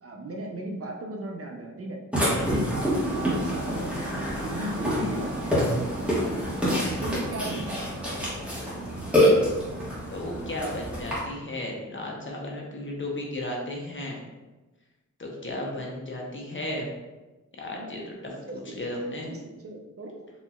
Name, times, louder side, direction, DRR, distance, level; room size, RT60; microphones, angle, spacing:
voice 1, 0.0-5.8 7.0-7.8 17.6-18.0 18.2-18.5 19.3-20.3, right 1 dB, 45° right, 1 dB, 0.6 m, -37 dB
Burping eructation, 2.1-11.2, equal, 5° right, 1.3 m, -26 dB
voice 2, 10.1-14.2 15.2-16.9 17.6-19.3, left 1 dB, 40° left, -1 dB, 0.8 m, -34 dB
4.1 x 2.9 x 2.3 m, 1.1 s
wide cardioid pair, 80°, 31 cm